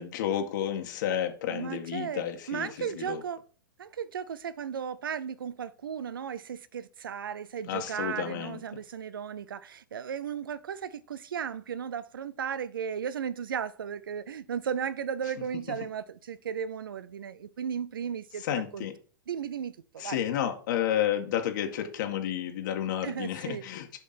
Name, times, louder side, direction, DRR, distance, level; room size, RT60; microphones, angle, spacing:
voice 1, 0.0-3.2 7.7-8.6 18.5-18.9 20.0-24.0, left 10 dB, 60° left, 1.8 m, -31 dB
voice 2, 1.5-3.4 3.8-18.9 19.3-20.2 23.0-23.7, right 7 dB, 80° right, 0.7 m, -35 dB
7.1 x 5.3 x 4.3 m
hypercardioid pair, 125°, 11 cm